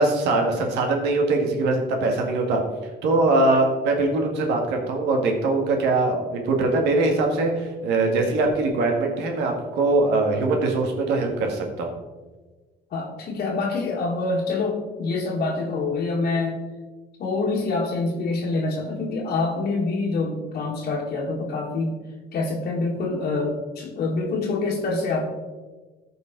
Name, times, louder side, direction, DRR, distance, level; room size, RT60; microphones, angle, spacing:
voice 1, 0.0-2.6 3.0-12.0, right 2 dB, 90° right, 2 dB, 1.9 m, -22 dB
voice 2, 12.9-16.6 17.2-22.0 22.3-25.2, left 3 dB, 60° left, -3 dB, 1.6 m, -26 dB
14.5 x 5.4 x 3.9 m, 1.3 s
cardioid pair, 110°, 17 cm